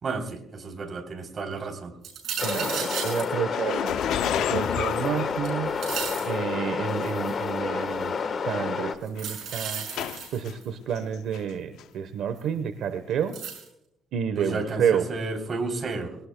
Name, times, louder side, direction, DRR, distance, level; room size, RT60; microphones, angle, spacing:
voice 1, 0.0-1.9 14.4-16.2, right 3 dB, 40° right, 4 dB, 3.2 m, -32 dB
sound 1, 2.0-3.3 4.2-5.1 5.4-6.3 7.0-7.5 9.1-10.6 12.4-12.5 13.3-13.7, right 7 dB, 60° right, 6.4 m, -34 dB
sound 2, 2.4-8.9, left 5 dB, 45° left, 1.2 m, -29 dB
voice 2, 2.4-5.7 6.2-8.1 8.4-9.9 10.3-13.4 14.1-15.1, right 8 dB, 75° right, 10 dB, 0.9 m, -29 dB
sound 3, 3.5-6.1 6.9-7.0 7.9-8.0 8.3-8.6 9.2-10.5 11.0-11.5 11.8-11.9 13.1-13.2, left 11 dB, 85° left, 0.4 m, -31 dB
22.0 x 18.5 x 2.2 m, 0.82 s
cardioid pair, 135°, 0 cm